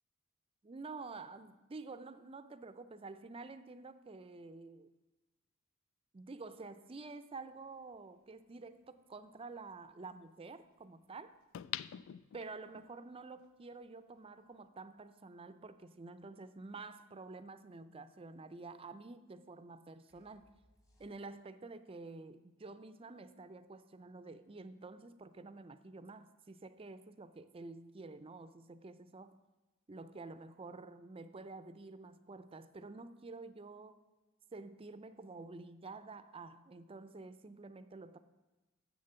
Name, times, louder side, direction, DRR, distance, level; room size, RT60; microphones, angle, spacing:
voice 1, 0.6-4.9 6.1-11.4 12.3-20.5 21.0-29.4 29.9-34.0 34.5-38.2, right 3 dB, 30° right, 12 dB, 0.4 m, -49 dB
sound 1, 7.9-8.0 11.5-12.9 13.4-13.5, left 12 dB, 75° left, 0.3 m, -44 dB
sound 2, 20.1-21.6, equal, 15° left, 1.3 m, -71 dB
7.8 x 6.7 x 6.8 m, 1.2 s
head